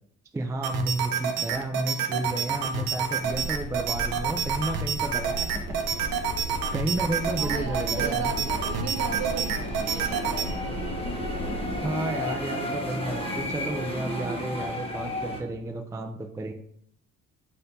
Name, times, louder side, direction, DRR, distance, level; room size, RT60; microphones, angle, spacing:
voice 1, 0.3-5.6 6.7-8.4 11.8-16.5, right 2 dB, 10° right, 4 dB, 0.3 m, -32 dB
sound 1, 0.6-10.5, right 6 dB, 85° right, 0.6 m, -29 dB
sound 2, 2.3-15.4, left 1 dB, 15° left, 1.0 m, -35 dB
sound 3, 3.2-11.9, left 1 dB, 90° left, 0.7 m, -36 dB
voice 2, 7.4-11.0 13.3-13.6, right 6 dB, 50° right, 6 dB, 0.8 m, -36 dB
4.2 x 2.7 x 3.9 m, 0.67 s
cardioid pair, 75°, 34 cm